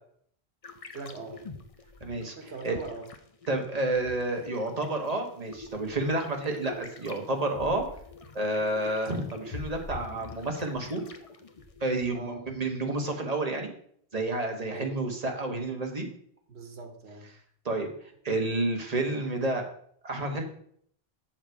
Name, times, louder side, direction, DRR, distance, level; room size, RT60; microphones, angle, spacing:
sound 1, 0.6-12.1, left 3 dB, 40° left, 0.7 m, -46 dB
voice 1, 0.9-1.4 2.3-3.1 12.1-12.4 14.7-14.9 16.5-17.3, right 3 dB, 80° right, 5 dB, 1.6 m, -41 dB
voice 2, 2.0-2.3 2.6-2.8 3.5-7.8 8.3-11.0 11.8-13.7 14.1-16.1 17.6-17.9 18.2-19.6 20.0-20.4, right 2 dB, 40° right, 3 dB, 1.4 m, -30 dB
7.4 x 6.7 x 4.7 m, 0.64 s
omnidirectional pair, 1.1 m